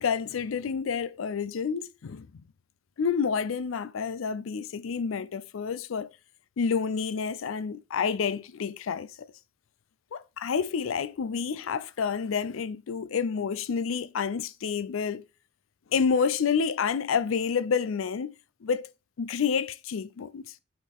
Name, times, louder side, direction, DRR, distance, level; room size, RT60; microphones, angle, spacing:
voice 1, 0.0-2.4 3.0-6.1 6.6-9.3 10.1-15.3 15.9-18.3 18.6-18.9 19.2-20.4, left 6 dB, 85° left, 0.4 m, -29 dB
8.5 x 3.8 x 3.5 m
head